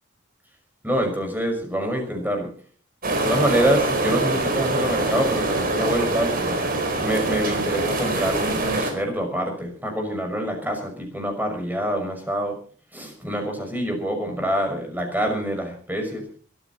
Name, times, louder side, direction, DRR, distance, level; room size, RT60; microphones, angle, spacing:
voice 1, 0.8-2.5 3.2-6.6 7.0-12.6 12.9-16.2, right 1 dB, 10° right, 4 dB, 6.0 m, -26 dB
sound 1, 3.0-8.9, right 2 dB, 45° right, 4.6 m, -24 dB
22.0 x 14.5 x 4.2 m, 0.40 s
head